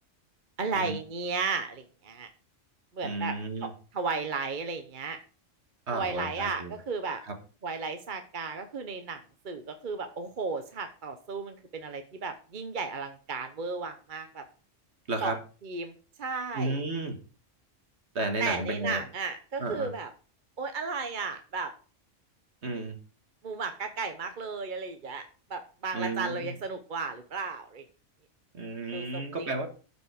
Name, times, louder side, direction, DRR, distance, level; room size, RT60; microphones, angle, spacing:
voice 1, 0.6-2.3 2.9-3.4 3.6-5.2 5.9-7.2 7.6-14.4 15.2-15.3 15.6-15.9 16.2-16.8 18.4-20.1 20.6-21.7 23.4-25.2 25.5-27.8 28.9-29.7, right 4 dB, 45° right, 7 dB, 1.0 m, -34 dB
voice 2, 3.0-3.7 5.9-6.7 7.2-7.3 15.1-15.4 16.5-17.2 18.2-19.0 19.6-19.9 22.6-23.0 25.9-26.5 28.5-29.7, right 2 dB, 60° right, 5 dB, 1.9 m, -33 dB
12.5 x 5.3 x 5.1 m, 0.38 s
omnidirectional pair, 1.3 m